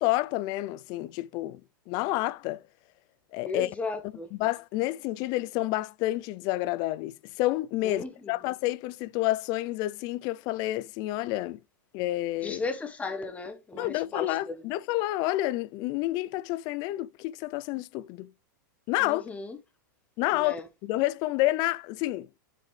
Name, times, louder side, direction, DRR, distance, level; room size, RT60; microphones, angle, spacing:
voice 1, 0.0-1.6 1.9-2.6 3.3-3.7 4.4-11.6 11.9-12.6 13.8-18.3 18.9-19.2 20.2-22.3, left 17 dB, 40° left, 0.4 m, -29 dB
voice 2, 3.4-4.3 7.8-8.3 12.4-14.6 19.0-19.6 20.3-20.7, left 3 dB, 10° left, 1.2 m, -36 dB
7.4 x 5.5 x 3.2 m
hypercardioid pair, 135°, 11 cm